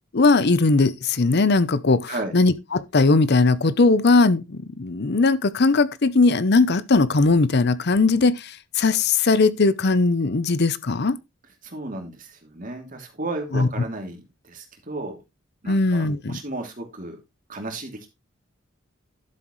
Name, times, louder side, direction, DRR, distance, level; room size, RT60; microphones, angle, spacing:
voice 1, 0.1-11.2 13.5-13.7 15.7-16.4, left 3 dB, 55° left, 0.7 m, -19 dB
voice 2, 2.1-2.4 11.6-15.2 15.6-17.2 17.5-18.1, right 2 dB, 40° right, 2.8 m, -34 dB
12.0 x 7.5 x 3.1 m
head